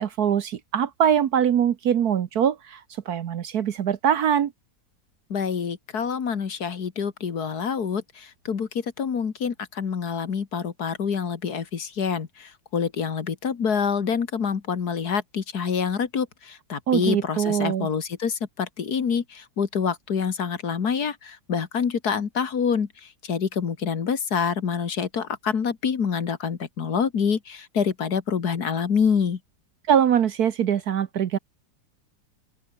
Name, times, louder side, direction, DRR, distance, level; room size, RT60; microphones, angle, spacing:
voice 1, 0.0-2.8 3.1-4.5 16.9-17.9 29.9-31.4, right 9 dB, 60° right, 1.3 m, -22 dB
voice 2, 5.3-29.4, left 6 dB, 55° left, 2.1 m, -26 dB
open air
omnidirectional pair, 2.0 m